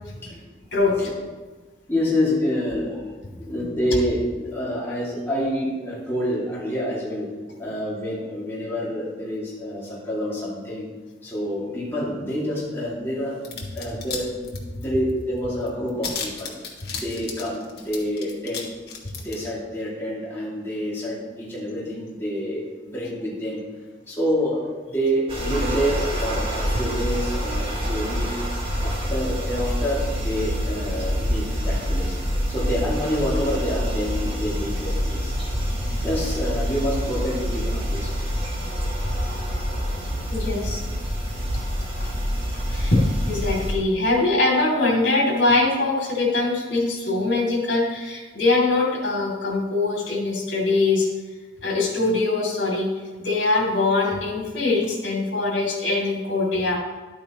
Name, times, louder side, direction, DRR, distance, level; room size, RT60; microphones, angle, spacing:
voice 1, 1.9-7.3 7.6-10.9 11.2-16.5 16.9-18.7 19.1-23.6 24.1-28.4 28.8-32.2 32.5-35.4 36.0-38.1, equal, 15° left, -7 dB, 2.3 m, -27 dB
sound 1, 13.4-14.2 14.4-15.1 15.4-15.5 15.7-18.6 18.9-19.3, left 6 dB, 55° left, 1.6 m, -33 dB
sound 2, 25.3-43.7, equal, 30° right, 1.9 m, -26 dB
voice 2, 40.3-40.8 42.0-42.1 42.7-51.1 51.6-52.9 53.2-56.8, left 2 dB, 70° left, -2 dB, 2.6 m, -22 dB
11.5 x 9.0 x 3.0 m, 1.3 s
head